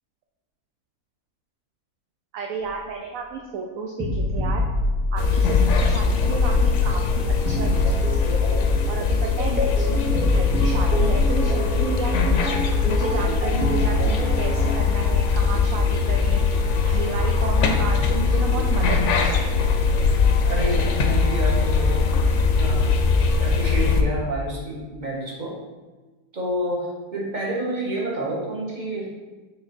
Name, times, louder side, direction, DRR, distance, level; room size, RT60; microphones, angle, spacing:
voice 1, 2.3-4.6 5.1-8.6 8.9-9.0 9.4-12.5 12.9-16.4 16.8-19.6, right 4 dB, 70° right, 2 dB, 1.0 m, -32 dB
sound 1, 2.6-2.7 4.0-5.8 7.5-14.8, left 1 dB, 5° right, 0.8 m, -26 dB
sound 2, 5.2-24.0, left 4 dB, 60° left, 0.9 m, -21 dB
voice 2, 20.4-22.1 22.6-23.0 23.4-25.6 26.3-29.1, right 1 dB, 30° right, -4 dB, 1.5 m, -29 dB
6.7 x 3.9 x 4.3 m, 1.3 s
omnidirectional pair, 1.6 m